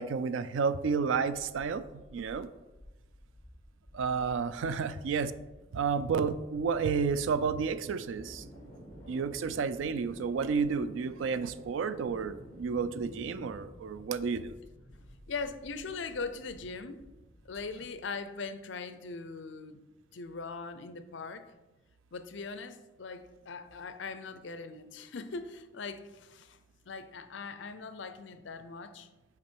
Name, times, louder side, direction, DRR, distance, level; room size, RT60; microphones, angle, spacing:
voice 1, 0.0-2.5 3.9-5.3 5.7-8.4 9.1-14.6, right 5 dB, 85° right, 13 dB, 0.4 m, -31 dB
sound 1, 1.3-18.2, equal, 20° left, 2.3 m, -52 dB
voice 2, 15.3-17.0 17.4-19.8 20.1-21.5 22.1-26.6 26.9-29.1, left 4 dB, 70° left, 11 dB, 0.5 m, -40 dB
6.0 x 4.8 x 4.5 m, 1.1 s
head